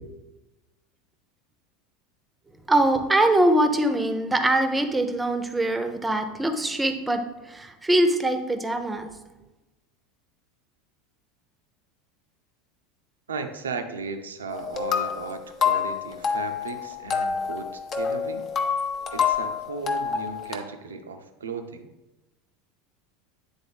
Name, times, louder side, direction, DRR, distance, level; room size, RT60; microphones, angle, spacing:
voice 1, 2.7-9.1, right 1 dB, 10° right, 7 dB, 0.7 m, -23 dB
voice 2, 13.3-18.5 19.1-21.9, right 4 dB, 75° right, 6 dB, 0.6 m, -35 dB
sound 1, 14.5-20.6, left 6 dB, 35° left, 0.7 m, -27 dB
8.9 x 3.8 x 3.5 m, 1.1 s
figure-of-eight pair, 75°, 0 cm